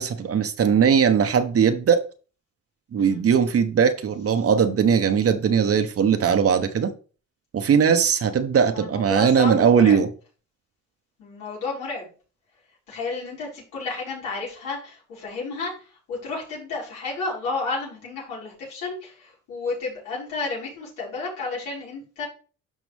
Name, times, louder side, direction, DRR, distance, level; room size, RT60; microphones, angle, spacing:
voice 1, 0.0-2.0 2.9-6.9 7.5-10.1, right 7 dB, 50° right, 9 dB, 1.1 m, -19 dB
voice 2, 8.7-10.0 11.2-12.1 12.9-22.2, left 3 dB, 90° left, -5 dB, 5.2 m, -32 dB
12.5 x 5.0 x 3.5 m, 0.37 s
cardioid pair, 90°, 30 cm